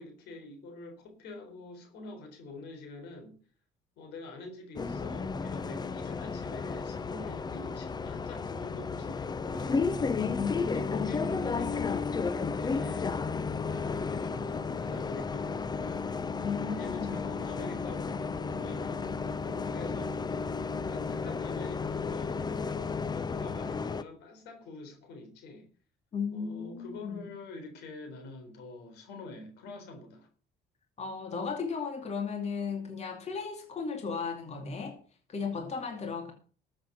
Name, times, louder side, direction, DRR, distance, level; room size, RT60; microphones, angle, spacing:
voice 1, 0.0-3.4 4.0-10.0 10.5-13.1 13.7-16.1 16.7-20.2 20.9-25.7 26.3-30.3, left 3 dB, 80° left, 3.8 m, -46 dB
Bus, 4.8-24.0, left 5 dB, 25° left, 0.7 m, -33 dB
voice 2, 10.2-11.1 16.4-17.2 26.1-27.2 31.0-35.0 35.3-36.3, left 5 dB, 40° left, 2.4 m, -35 dB
13.0 x 7.8 x 5.9 m
cardioid pair, 110°, 17 cm